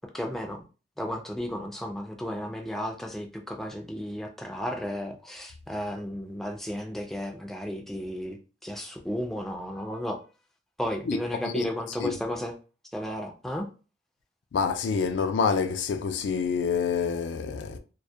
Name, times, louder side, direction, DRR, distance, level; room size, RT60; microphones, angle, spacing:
voice 1, 0.1-0.6 1.0-10.2 10.8-12.5 12.9-13.7, equal, ahead, 0.3 m, -33 dB
voice 2, 14.5-17.8, left 5 dB, 90° left, 0.3 m, -27 dB
2.2 x 2.0 x 2.6 m
head